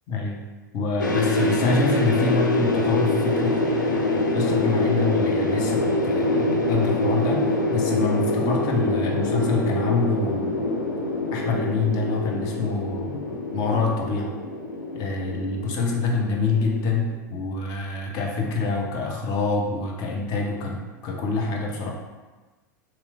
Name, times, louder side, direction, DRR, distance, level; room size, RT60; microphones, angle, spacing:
voice 1, 0.1-0.4 0.7-10.6 11.3-14.3 14.9-21.9, left 3 dB, 40° left, 0 dB, 0.6 m, -26 dB
sound 1, 1.0-17.1, left 2 dB, 85° left, 0.4 m, -25 dB
3.0 x 3.0 x 2.4 m, 1.3 s
figure-of-eight pair, 85°, 10 cm